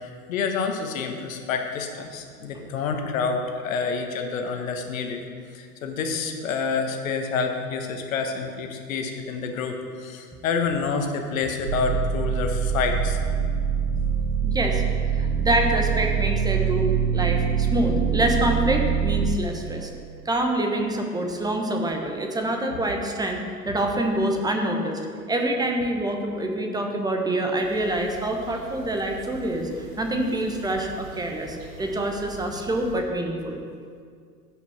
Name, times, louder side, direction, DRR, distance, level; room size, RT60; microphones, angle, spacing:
voice 1, 0.0-5.2 5.5-13.5 13.9-14.1 14.5-14.6 15.2-15.3, left 5 dB, 55° left, 4 dB, 1.4 m, -28 dB
sound 1, 11.7-19.4, right 7 dB, 75° right, 0.8 m, -24 dB
voice 2, 14.4-14.8 15.1-19.9 20.2-25.0 25.3-33.6, right 1 dB, 10° right, 2 dB, 1.1 m, -26 dB
sound 2, 27.6-33.0, equal, 45° right, 2.0 m, -45 dB
15.5 x 5.8 x 4.4 m, 2.1 s
figure-of-eight pair, 90°, 48 cm